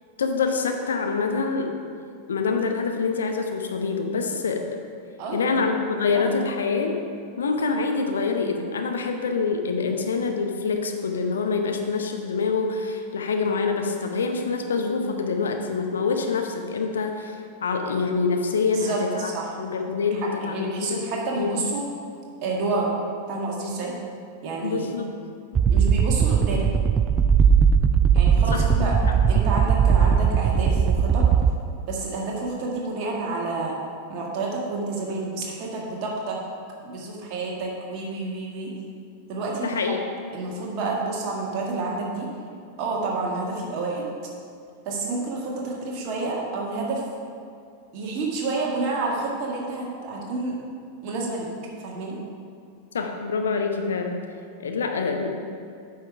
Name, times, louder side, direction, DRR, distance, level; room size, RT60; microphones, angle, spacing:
voice 1, 0.2-1.8 2.3-4.7 5.3-7.0 7.4-19.3 19.6-21.0 21.4-21.6 24.6-25.1 28.5-28.9 39.6-40.0 52.9-54.2 54.6-55.3, left 4 dB, 65° left, 4 dB, 0.8 m, -26 dB
voice 2, 5.2-5.6 6.1-6.3 18.7-19.5 20.1-21.9 22.4-22.9 23.3-23.9 24.4-24.9 25.7-26.6 28.1-29.0 29.3-31.3 31.9-33.8 34.1-36.4 36.8-38.7 39.3-39.8 40.3-42.3 42.8-44.1 44.8-47.0 47.9-50.6 51.0-51.5 51.8-52.2, right 3 dB, 40° right, -2 dB, 1.8 m, -29 dB
sound 1, 25.5-31.5, right 7 dB, 25° right, 0.3 m, -19 dB
8.8 x 5.5 x 4.7 m, 2.4 s
figure-of-eight pair, 90°, 0 cm